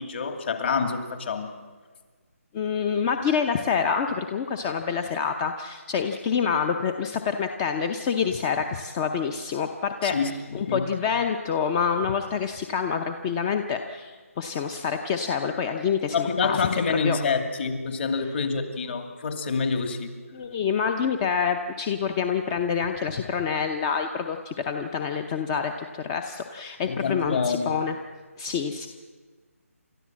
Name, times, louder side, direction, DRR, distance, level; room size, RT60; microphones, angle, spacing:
voice 1, 0.0-1.5 10.0-10.9 16.1-20.2 26.9-27.7, left 5 dB, 45° left, 6 dB, 2.5 m, -27 dB
voice 2, 2.5-10.3 10.5-17.2 20.3-28.0 28.4-28.9, left 6 dB, 20° left, 7 dB, 0.7 m, -27 dB
29.0 x 13.5 x 7.5 m, 1.5 s
figure-of-eight pair, 160°, 8 cm